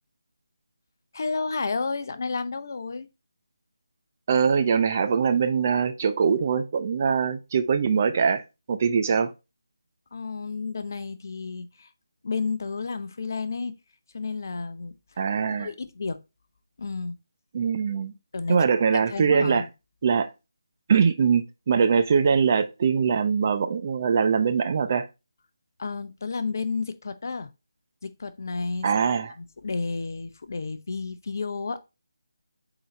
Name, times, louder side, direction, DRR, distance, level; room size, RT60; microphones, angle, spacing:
voice 1, 1.1-3.1 10.1-11.9 12.2-13.7 14.1-15.2 15.5-16.2 16.8-17.2 18.3-18.7 19.1-19.7 25.8-27.5 28.0-29.0 29.4-31.8, left 4 dB, 50° left, 0.7 m, -31 dB
voice 2, 4.3-8.4 8.7-9.3 15.2-15.7 17.5-18.1 18.5-19.6 20.0-20.3 20.9-25.1 28.8-29.3, right 6 dB, 35° right, 0.6 m, -22 dB
7.8 x 4.0 x 3.1 m
figure-of-eight pair, 155°, 2 cm